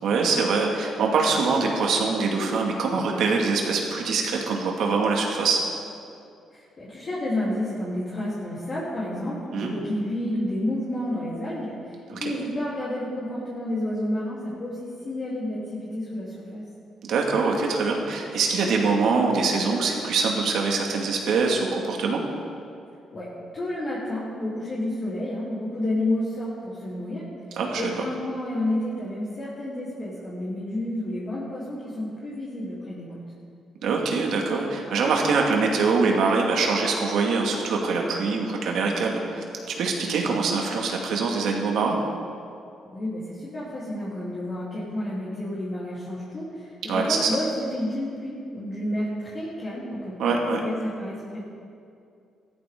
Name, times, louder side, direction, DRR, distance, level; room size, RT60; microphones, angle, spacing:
voice 1, 0.0-5.6 9.5-9.7 12.1-12.3 17.0-22.2 27.5-27.9 33.8-42.0 46.9-47.3 50.2-50.6, right 4 dB, 75° right, 0 dB, 2.1 m, -24 dB
voice 2, 6.5-11.7 12.1-16.6 23.1-23.3 23.5-27.2 27.7-33.2 42.9-51.4, left 1 dB, 40° left, -10 dB, 3.6 m, -30 dB
15.5 x 13.0 x 3.9 m, 2.4 s
cardioid pair, 90°, 0 cm